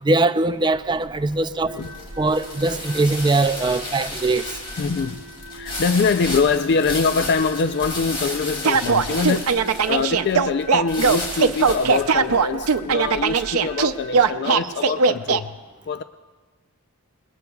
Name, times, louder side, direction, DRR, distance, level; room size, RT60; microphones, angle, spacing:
voice 1, 0.0-1.8 2.2-4.5, right 2 dB, 20° right, 11 dB, 0.4 m, -21 dB
sound 1, 0.8-14.0, left 2 dB, 25° left, 2.6 m, -34 dB
sound 2, 1.7-14.5, right 1 dB, 45° right, 1.1 m, -42 dB
voice 2, 4.8-5.2 5.5-15.5 15.9-16.0, left 5 dB, 50° left, 10 dB, 0.4 m, -24 dB
sound 3, 8.6-15.4, right 5 dB, 70° right, 0.6 m, -19 dB
28.5 x 21.0 x 2.3 m, 1.4 s
head